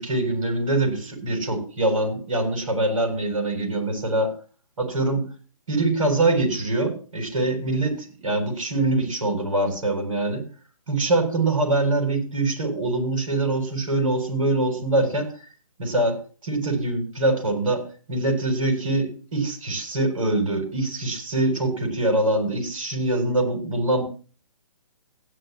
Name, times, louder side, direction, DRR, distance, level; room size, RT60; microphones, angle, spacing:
voice 1, 0.0-4.3 4.8-5.2 5.7-10.4 10.9-15.3 15.8-24.0, right 2 dB, 65° right, 3 dB, 7.5 m, -24 dB
16.5 x 11.5 x 3.1 m, 0.37 s
figure-of-eight pair, 140°, 18 cm